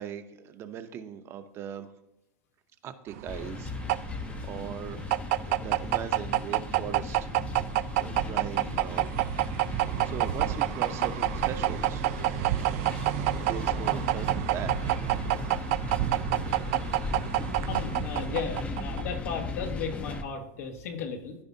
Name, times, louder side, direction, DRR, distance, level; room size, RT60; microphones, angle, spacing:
voice 1, 0.0-1.9 2.8-3.7 4.4-5.0 5.4-7.3 7.9-9.3 10.0-12.1 13.2-14.8, right 8 dB, 30° right, 9 dB, 0.7 m, -39 dB
sound 1, 3.1-19.2, right 15 dB, 60° right, 0.4 m, -28 dB
sound 2, 3.3-20.2, left 3 dB, 15° left, 0.6 m, -37 dB
voice 2, 17.6-21.4, left 6 dB, 90° left, 2 dB, 1.9 m, -35 dB
14.0 x 4.8 x 2.7 m, 0.90 s
supercardioid pair, 150°, 8 cm